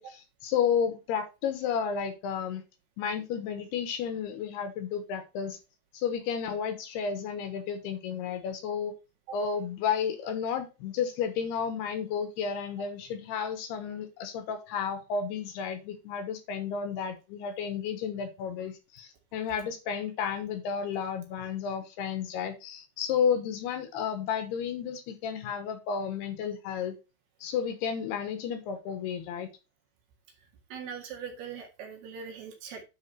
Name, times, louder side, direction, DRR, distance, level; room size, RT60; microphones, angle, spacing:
voice 1, 0.0-2.6 3.0-5.6 5.9-8.9 9.3-27.0 27.4-29.5, left 7 dB, 75° left, 2.9 m, -32 dB
voice 2, 30.7-32.8, right 7 dB, 65° right, 3.6 m, -41 dB
10.0 x 4.8 x 4.4 m
omnidirectional pair, 5.1 m